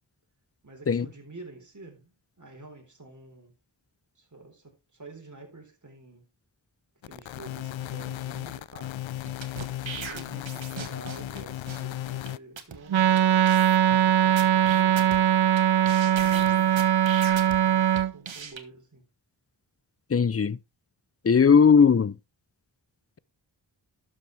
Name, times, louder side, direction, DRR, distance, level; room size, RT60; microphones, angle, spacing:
voice 1, 0.6-3.5 4.2-6.3 7.1-9.1 9.8-13.4 13.9-15.5 16.0-17.0 17.5-19.1, right 3 dB, 40° right, 4.1 m, -48 dB
sound 1, 7.0-12.4, left 13 dB, 85° left, 0.5 m, -35 dB
sound 2, 9.3-11.4 11.7-11.8 12.3-12.4 12.6-12.8 13.2-13.3 13.5-14.0 14.4-15.6 15.9-17.6 18.0-18.6, right 6 dB, 90° right, 1.5 m, -38 dB
Wind instrument woodwind instrument, 12.9-18.1, right 10 dB, 60° right, 0.6 m, -21 dB
voice 2, 20.1-20.6 21.2-22.1, left 6 dB, 35° left, 0.5 m, -18 dB
12.0 x 7.7 x 3.4 m
wide cardioid pair, 70°, 45 cm